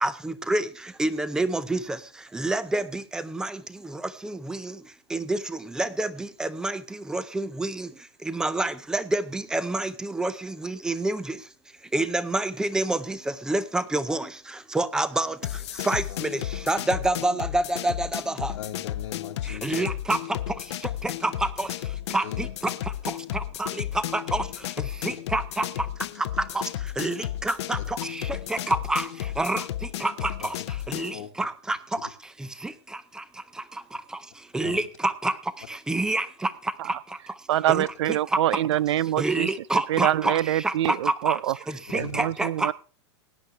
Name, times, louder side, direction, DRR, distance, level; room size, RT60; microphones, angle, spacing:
voice 1, 0.0-0.7 1.0-2.0 2.3-3.6 3.9-4.7 5.1-6.8 7.1-7.9 8.3-11.4 11.9-13.2 13.5-14.3 14.7-15.3 15.8-16.4 16.7-18.5 19.6-20.2 21.0-21.3 21.6-21.7 22.1-22.5 23.3-23.7 23.9-24.4 25.0-25.6 26.5-26.6 27.0-29.1 29.4-29.6 30.0-30.5 30.9-31.8 32.6-32.7 34.5-35.3 35.9-36.5 37.7-38.2 39.2-41.4 41.9-42.7, right 2 dB, 5° right, 16 dB, 0.6 m, -27 dB
sound 1, 15.4-31.2, left 13 dB, 65° left, 0.7 m, -33 dB
voice 2, 18.5-19.9 22.2-22.5 27.7-27.8 30.4-30.7 31.1-31.3 34.6-34.8 37.7-37.8 41.9-42.2, left 9 dB, 85° left, -2 dB, 1.4 m, -39 dB
voice 3, 37.5-39.5 39.9-41.5 41.9-42.7, right 13 dB, 70° right, 25 dB, 0.5 m, -25 dB
17.0 x 10.0 x 3.4 m, 0.36 s
supercardioid pair, 150°, 15 cm